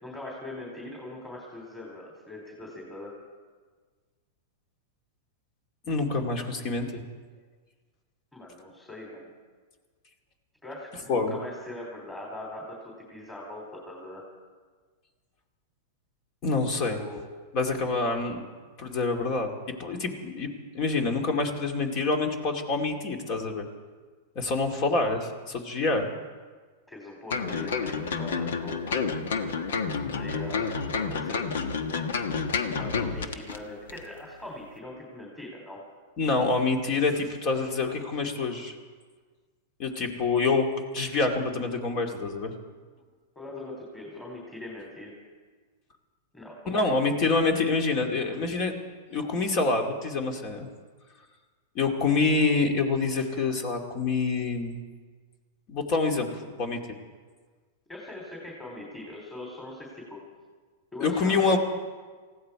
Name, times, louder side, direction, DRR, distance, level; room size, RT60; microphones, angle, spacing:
voice 1, 0.0-3.1 8.3-9.3 10.6-14.2 16.9-17.2 26.9-29.0 30.1-30.7 31.0-31.6 32.7-35.8 43.3-45.2 46.3-46.9 57.9-60.2 60.9-61.6, left 2 dB, 10° left, -2 dB, 3.2 m, -41 dB
voice 2, 5.9-7.0 11.1-11.4 16.4-17.0 17.5-18.4 18.8-19.5 19.8-20.5 20.7-23.7 24.4-26.1 36.2-38.7 39.8-40.7 40.9-42.5 46.7-48.7 49.1-50.7 51.7-54.8 55.7-56.8 61.0-61.6, left 3 dB, 45° left, 4 dB, 2.3 m, -26 dB
sound 1, 27.3-33.6 33.9-34.0, left 5 dB, 80° left, 1.2 m, -29 dB
19.0 x 15.5 x 4.8 m, 1.5 s
hypercardioid pair, 120°, 0 cm